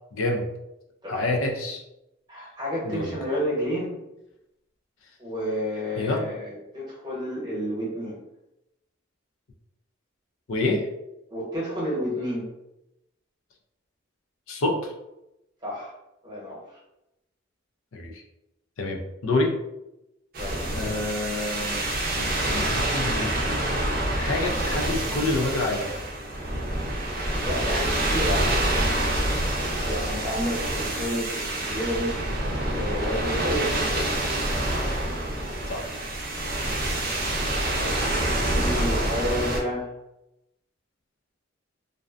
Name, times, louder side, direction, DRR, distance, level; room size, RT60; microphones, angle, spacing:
voice 1, 0.1-0.5 1.1-1.8 2.8-3.1 6.0-6.2 10.5-10.9 14.5-14.9 17.9-18.2 18.8-19.5 20.7-21.8 22.2-23.6 24.1-25.9 35.7-35.9, left 2 dB, 75° left, 3 dB, 0.4 m, -27 dB
voice 2, 2.3-4.0 5.2-8.2 11.3-12.5 15.6-15.9 16.2-16.6 20.3-20.8 27.4-28.7 29.8-32.1 32.7-34.3 37.8-39.9, equal, 20° right, -7 dB, 0.9 m, -30 dB
sound 1, 20.3-39.6, right 1 dB, 45° right, 0.5 m, -27 dB
2.5 x 2.1 x 2.4 m, 0.91 s
head